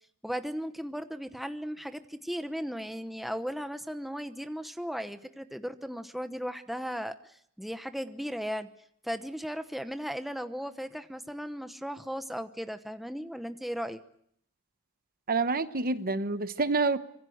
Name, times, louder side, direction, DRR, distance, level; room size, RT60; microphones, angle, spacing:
voice 1, 0.2-8.7 9.0-14.0, equal, ahead, 9 dB, 0.9 m, -36 dB
voice 2, 15.3-17.0, right 3 dB, 40° right, 12 dB, 1.0 m, -27 dB
25.5 x 23.0 x 7.9 m, 0.70 s
head